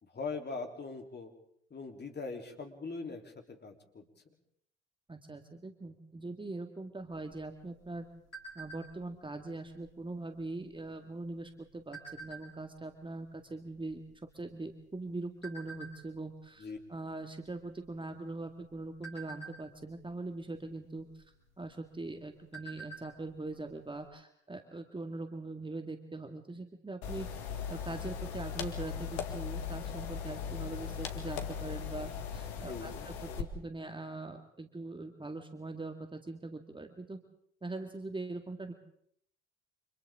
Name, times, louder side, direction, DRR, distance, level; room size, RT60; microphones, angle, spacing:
voice 1, 0.0-1.3 1.7-4.0 16.6-16.8 32.7-33.1, left 4 dB, 30° left, 3 dB, 3.7 m, -41 dB
voice 2, 5.1-8.1 8.6-14.0 14.3-21.3 21.6-27.3 27.7-37.2 37.6-38.7, right 2 dB, 15° right, 6 dB, 2.1 m, -42 dB
sound 1, 7.1-9.1 9.6-9.9 10.1-10.5 11.2-12.8 13.4-13.5 13.7-14.9 15.4-15.9 16.4-16.7 17.0-17.2 17.7-18.2 18.6-20.0 21.1-21.2 21.7-21.8 22.1-23.2 23.5-23.6 23.9-24.0, right 3 dB, 85° left, 6.7 m, -47 dB
sound 2, 27.0-33.4, left 7 dB, 65° left, 2.0 m, -39 dB
29.5 x 26.0 x 3.8 m, 0.68 s
figure-of-eight pair, 55°, 34 cm